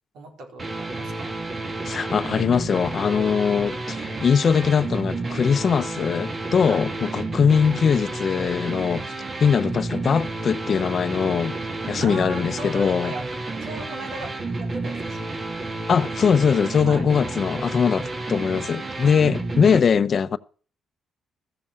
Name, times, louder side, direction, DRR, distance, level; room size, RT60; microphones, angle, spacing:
voice 1, 0.1-1.4 6.6-6.9 12.0-13.3 13.6-15.4 16.8-17.1, right 2 dB, 75° right, 4.3 m, -38 dB
sound 1, 0.6-19.8, right 2 dB, 35° right, 2.1 m, -31 dB
voice 2, 1.8-9.1 9.4-11.6 11.9-13.1 15.9-20.4, left 6 dB, 50° left, 0.8 m, -21 dB
14.0 x 7.1 x 6.4 m
cardioid pair, 90°, 0 cm